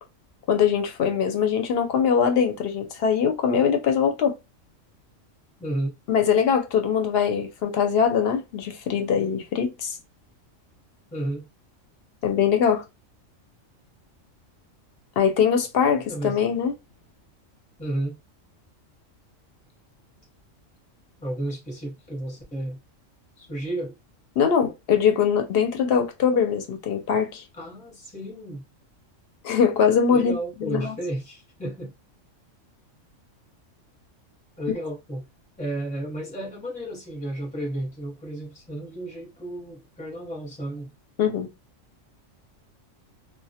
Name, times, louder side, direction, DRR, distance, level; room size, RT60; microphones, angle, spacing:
voice 1, 0.5-4.3 6.1-10.0 12.2-12.8 15.2-16.7 24.4-27.4 29.4-30.4 30.6-30.9 41.2-41.5, left 7 dB, 60° left, 0.7 m, -22 dB
voice 2, 5.6-5.9 11.1-11.5 16.0-16.4 17.8-18.2 21.2-22.8 23.4-23.9 27.5-28.6 30.1-31.9 34.6-35.2 35.6-40.9, right 1 dB, 5° left, 0.6 m, -32 dB
2.1 x 2.1 x 2.7 m
omnidirectional pair, 1.4 m